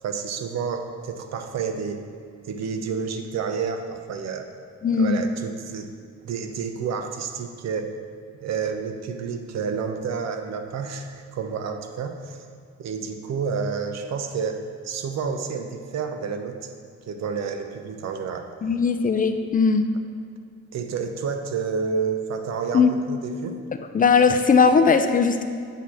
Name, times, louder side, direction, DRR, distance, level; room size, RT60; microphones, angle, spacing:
voice 1, 0.0-2.0 2.4-4.5 4.9-5.9 6.2-7.9 8.3-12.4 12.8-16.6 17.1-18.5 20.7-23.6, right 5 dB, 60° right, 6 dB, 0.7 m, -30 dB
voice 2, 4.8-5.2 18.6-19.8 22.7-22.9 23.9-25.4, left 5 dB, 30° left, 7 dB, 0.4 m, -18 dB
8.2 x 2.8 x 6.1 m, 2.1 s
cardioid pair, 90°, 30 cm